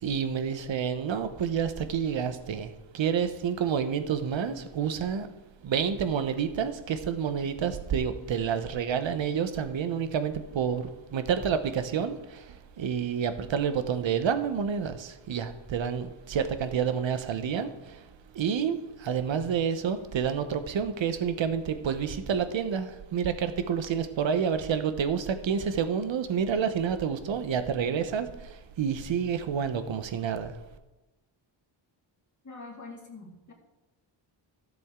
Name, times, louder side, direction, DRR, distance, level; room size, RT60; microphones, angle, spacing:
voice 1, 0.0-5.3 5.6-18.0 18.3-30.6, right 7 dB, 65° right, 10 dB, 1.0 m, -29 dB
voice 2, 32.4-33.5, left 3 dB, 35° left, -1 dB, 2.0 m, -44 dB
13.0 x 7.7 x 3.7 m, 1.1 s
cardioid pair, 85°, 48 cm